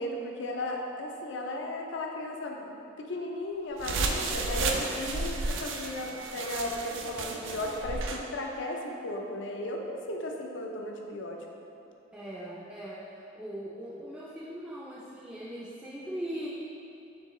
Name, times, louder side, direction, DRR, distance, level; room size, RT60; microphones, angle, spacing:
voice 1, 0.0-11.4, left 1 dB, 70° left, 1 dB, 0.5 m, -35 dB
sound 1, 3.8-8.2, right 3 dB, 75° right, 0.4 m, -33 dB
voice 2, 12.1-16.5, equal, 10° right, -7 dB, 0.4 m, -40 dB
4.6 x 3.6 x 3.0 m, 2.8 s
head